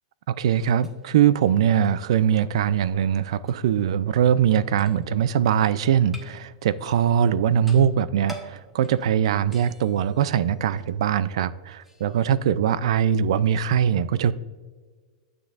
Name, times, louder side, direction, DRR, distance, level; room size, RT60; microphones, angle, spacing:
voice 1, 0.3-14.3, right 9 dB, 80° right, 0.4 m, -22 dB
sound 1, 0.7-12.4, right 1 dB, 5° right, 1.1 m, -50 dB
9.3 x 7.4 x 2.5 m
supercardioid pair, 135°, 3 cm